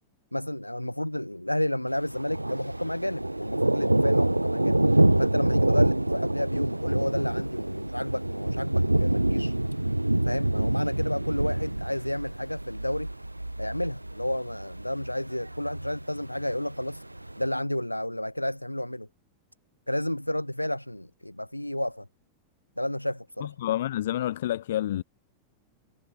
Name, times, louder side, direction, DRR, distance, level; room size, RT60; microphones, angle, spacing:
voice 1, 0.3-4.8 5.2-9.6 10.2-13.1 13.6-17.0 17.4-19.1 19.9-22.1 22.8-23.5, left 1 dB, 90° left, 2.8 m, -31 dB
Thunder, 1.9-17.5, right 1 dB, 85° right, 2.0 m, -26 dB
voice 2, 23.4-25.0, left 13 dB, 60° left, 1.4 m, -28 dB
figure-of-eight pair, 90°, 0 cm